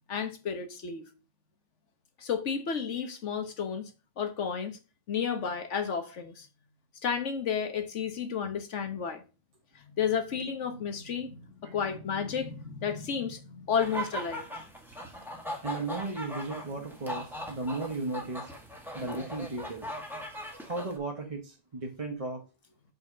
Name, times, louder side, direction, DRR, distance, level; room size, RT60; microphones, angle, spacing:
voice 1, 0.1-1.1 2.2-3.9 4.2-4.8 5.1-6.5 7.0-9.2 9.7-14.5, left 7 dB, 75° left, 1.4 m, -32 dB
sound 1, 13.8-21.0, equal, ahead, 1.4 m, -40 dB
voice 2, 15.6-18.5 18.9-19.9 20.3-22.4, right 3 dB, 30° right, 1.0 m, -35 dB
5.1 x 4.2 x 6.0 m
omnidirectional pair, 1.2 m